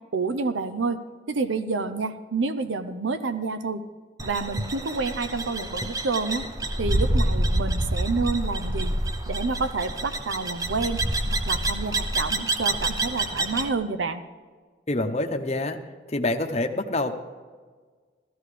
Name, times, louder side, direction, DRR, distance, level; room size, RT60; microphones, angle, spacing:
voice 1, 0.1-1.0 1.3-3.8 4.2-6.4 6.8-9.0 9.3-11.0 11.3-14.2, right 4 dB, 85° right, 10 dB, 0.6 m, -28 dB
sound 1, 4.2-13.7, right 1 dB, 20° right, 0.6 m, -27 dB
voice 2, 14.9-15.8 16.1-17.1, left 2 dB, 35° left, 5 dB, 0.8 m, -26 dB
15.0 x 13.5 x 3.3 m, 1.5 s
head